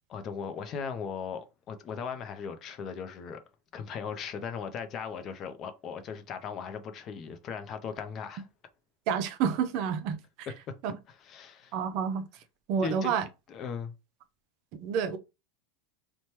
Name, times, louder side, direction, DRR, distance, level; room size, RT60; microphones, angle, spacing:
voice 1, 0.1-3.4 3.7-8.4 10.7-10.8 11.2-11.7 12.8-13.1 13.5-13.9, left 6 dB, 35° left, 0.5 m, -38 dB
voice 2, 9.1-10.5 10.8-11.0 11.7-12.3 12.7-13.3 14.7-15.2, right 7 dB, 55° right, 0.4 m, -29 dB
3.0 x 2.2 x 2.9 m
supercardioid pair, 135°, 0 cm